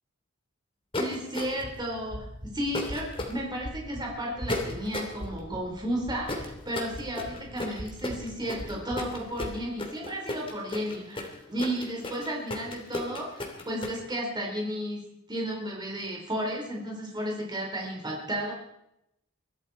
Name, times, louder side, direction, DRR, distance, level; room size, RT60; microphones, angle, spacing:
sound 1, 0.9-1.8 2.7-3.3 4.5-5.2 6.3-14.0, left 2 dB, 25° left, 3.0 m, -34 dB
voice 1, 1.0-18.5, equal, 20° right, -2 dB, 4.4 m, -33 dB
sound 2, 1.4-9.6, equal, 60° right, 6.2 m, -43 dB
22.5 x 13.5 x 4.4 m, 0.82 s
head